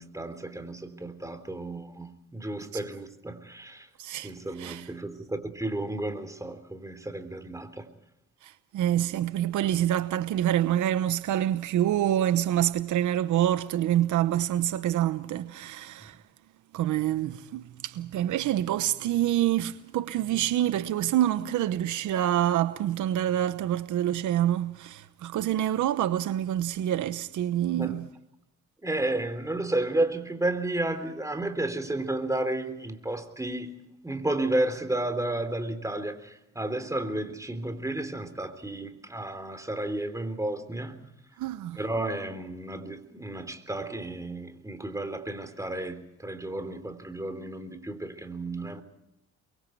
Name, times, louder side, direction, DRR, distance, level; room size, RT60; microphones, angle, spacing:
voice 1, 0.0-3.9 4.2-7.9 27.8-28.0 28.8-33.7 34.0-41.0 41.7-48.8, right 1 dB, 10° right, 3.6 m, -32 dB
voice 2, 4.0-4.3 4.6-4.9 8.4-16.2 16.7-28.1 41.4-41.8, right 12 dB, 80° right, 1.0 m, -26 dB
29.5 x 23.0 x 4.6 m
cardioid pair, 90°, 30 cm